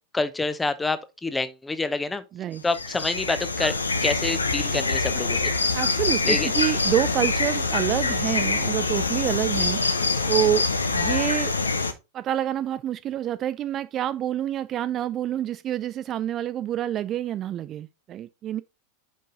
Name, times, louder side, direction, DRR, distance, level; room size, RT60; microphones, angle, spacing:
voice 1, 0.1-2.2 2.6-3.8 4.0-5.5 6.2-6.5, left 3 dB, 10° left, 0.7 m, -27 dB
sound 1, 2.6-11.9, left 3 dB, 75° left, 0.8 m, -25 dB
voice 2, 5.7-9.8 10.3-10.7 10.9-11.5 12.1-18.6, right 11 dB, 30° right, 0.3 m, -27 dB
6.4 x 5.3 x 3.8 m
figure-of-eight pair, 90°, 0 cm